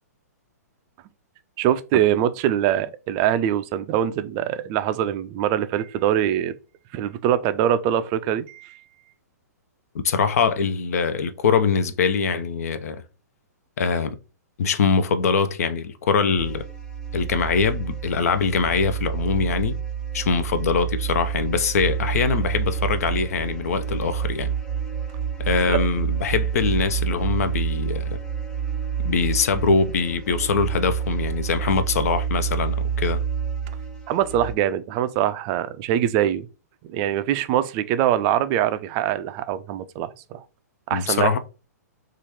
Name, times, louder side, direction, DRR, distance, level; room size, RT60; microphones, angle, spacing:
voice 1, 1.6-6.5 6.9-8.8 25.7-25.8 34.1-36.5 36.8-40.4 40.9-41.4, right 11 dB, 35° right, 0.3 m, -23 dB
voice 2, 9.9-13.0 13.8-14.2 14.6-16.6 17.1-19.8 20.1-24.5 25.4-28.2 29.0-33.2 40.9-41.4, left 5 dB, 60° left, 0.5 m, -23 dB
sound 1, 16.4-34.5, right 8 dB, 5° left, 0.8 m, -28 dB
3.0 x 2.4 x 4.2 m
figure-of-eight pair, 115°, 9 cm